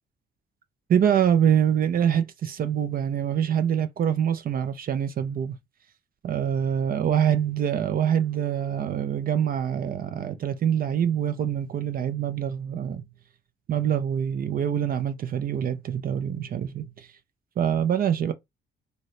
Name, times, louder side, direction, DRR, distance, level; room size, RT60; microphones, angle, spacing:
voice 1, 0.9-5.6 6.2-13.0 13.7-17.1 17.6-18.3, right 9 dB, 45° right, 0.4 m, -25 dB
2.9 x 2.7 x 3.1 m
cardioid pair, 90°, 20 cm